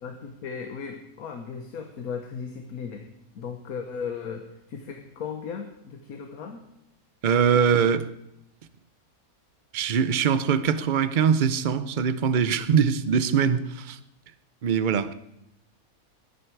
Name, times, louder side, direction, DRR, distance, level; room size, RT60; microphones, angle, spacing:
voice 1, 0.0-3.0 3.3-6.6, left 6 dB, 80° left, 1.6 m, -36 dB
voice 2, 7.2-8.0 9.7-14.0 14.6-15.1, right 7 dB, 45° right, 0.6 m, -22 dB
19.5 x 9.9 x 4.7 m
omnidirectional pair, 1.5 m